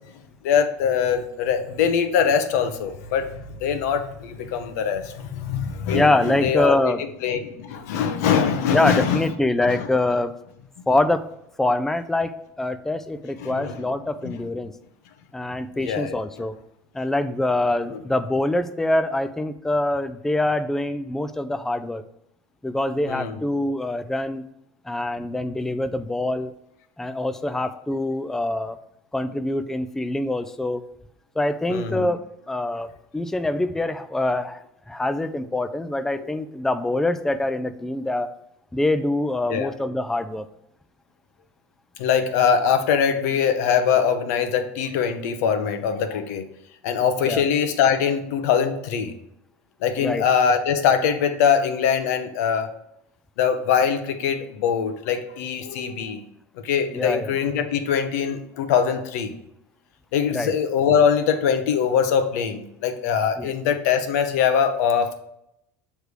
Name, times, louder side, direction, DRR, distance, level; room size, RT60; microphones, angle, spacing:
voice 1, 0.4-6.9 7.2-9.2 9.7-9.9 13.4-13.8 14.2-14.3 15.8-16.2 17.9-18.0 23.1-23.4 31.7-32.1 36.1-36.2 39.5-39.7 42.0-46.5 46.8-49.1 49.8-52.7 53.4-56.2 56.6-59.3 60.1-65.1, left 7 dB, 85° left, 7 dB, 0.8 m, -22 dB
voice 2, 5.9-7.0 8.7-10.3 10.9-11.3 11.6-14.7 15.3-16.6 16.9-22.0 22.6-24.5 24.9-26.5 27.0-28.8 29.1-30.8 31.4-32.2 32.5-32.9 33.1-34.6 34.9-38.3 38.7-40.5 47.2-47.4 50.0-50.2 56.9-57.4 60.3-60.5 63.4-63.5, left 2 dB, 5° left, 10 dB, 0.3 m, -24 dB
6.5 x 3.3 x 4.8 m, 0.80 s
supercardioid pair, 120°, 8 cm